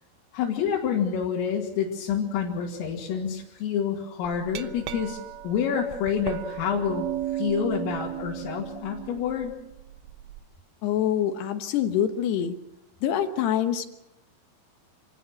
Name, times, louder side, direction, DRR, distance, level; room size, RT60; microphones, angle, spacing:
voice 1, 0.3-5.2 5.4-7.0 7.3-9.5, left 7 dB, 85° left, -4 dB, 5.0 m, -28 dB
Glass, 4.3-10.4, right 13 dB, 75° right, 2.8 m, -35 dB
voice 2, 10.8-12.6 13.0-13.9, left 10 dB, 70° left, 8 dB, 2.8 m, -25 dB
27.5 x 17.5 x 6.5 m, 0.90 s
omnidirectional pair, 5.8 m